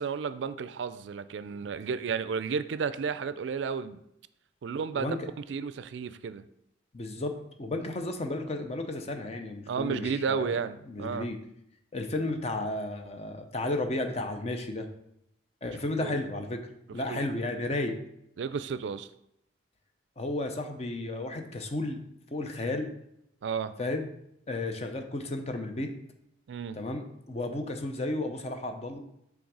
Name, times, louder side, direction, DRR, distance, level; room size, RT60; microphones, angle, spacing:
voice 1, 0.0-4.0 4.6-5.2 5.5-6.4 9.7-11.3 16.0-16.2 17.1-17.3 18.4-19.1 23.4-23.7 26.5-26.8, right 6 dB, 75° right, 14 dB, 0.3 m, -32 dB
voice 2, 4.7-5.2 6.9-11.4 11.9-14.9 15.6-16.6 16.9-18.0 20.2-22.0 22.3-22.9 23.8-24.1 24.5-25.9 26.7-29.0, left 2 dB, 35° left, 6 dB, 0.6 m, -33 dB
6.3 x 3.6 x 4.7 m, 0.79 s
head